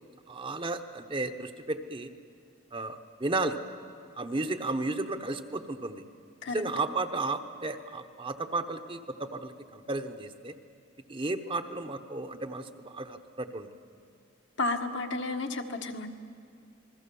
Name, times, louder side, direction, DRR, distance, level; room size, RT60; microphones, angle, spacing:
voice 1, 0.3-2.1 2.7-3.6 4.2-6.0 6.5-10.5 11.1-13.7, right 2 dB, 25° right, 7 dB, 1.0 m, -33 dB
voice 2, 14.6-16.1, left 2 dB, 60° left, 4 dB, 1.6 m, -32 dB
28.0 x 21.0 x 7.1 m, 2.4 s
head